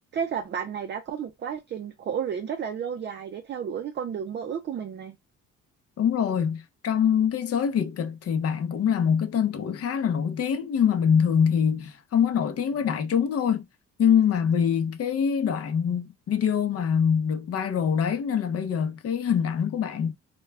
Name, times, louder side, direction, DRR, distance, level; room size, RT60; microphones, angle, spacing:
voice 1, 0.1-5.2, right 7 dB, 35° right, 0.4 m, -32 dB
voice 2, 6.0-13.7 14.0-20.1, left 7 dB, 50° left, 0.6 m, -24 dB
2.2 x 2.2 x 3.2 m
cardioid pair, 90°, 30 cm